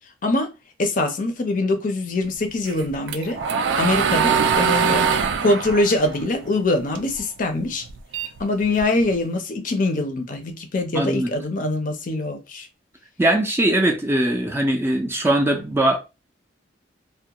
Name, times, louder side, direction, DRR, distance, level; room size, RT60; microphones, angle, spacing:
voice 1, 0.8-3.4 3.8-7.8 8.4-12.7, left 2 dB, 45° left, 0.5 m, -23 dB
sound 1, 2.7-7.2 7.6-9.1, right 6 dB, 80° right, 0.3 m, -22 dB
voice 2, 10.9-11.3 13.2-16.0, right 1 dB, 15° right, 0.4 m, -20 dB
2.3 x 2.1 x 2.8 m
head